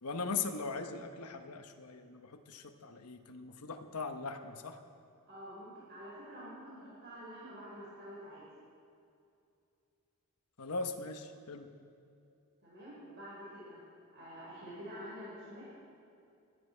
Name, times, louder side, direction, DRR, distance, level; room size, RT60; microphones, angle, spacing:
voice 1, 0.0-4.8 10.6-11.7, left 4 dB, 85° left, 7 dB, 1.0 m, -40 dB
voice 2, 5.3-8.5 12.6-13.8 14.1-15.6, equal, 50° right, -8 dB, 4.7 m, -48 dB
21.5 x 12.5 x 4.5 m, 2.5 s
head